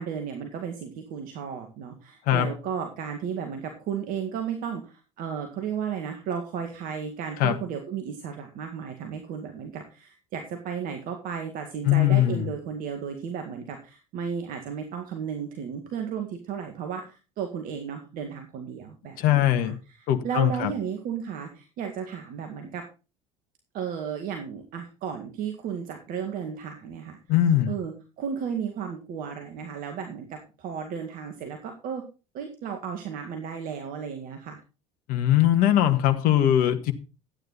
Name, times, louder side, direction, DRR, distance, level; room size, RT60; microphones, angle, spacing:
voice 1, 0.0-19.7 20.0-22.8 23.7-27.2 27.7-32.0 32.3-34.6, right 7 dB, 55° right, 2.0 m, -34 dB
voice 2, 11.8-12.5 19.2-19.8 20.1-20.7 27.3-27.7 35.1-36.9, left 12 dB, 55° left, 1.5 m, -21 dB
13.0 x 9.4 x 4.0 m
figure-of-eight pair, 65°, 18 cm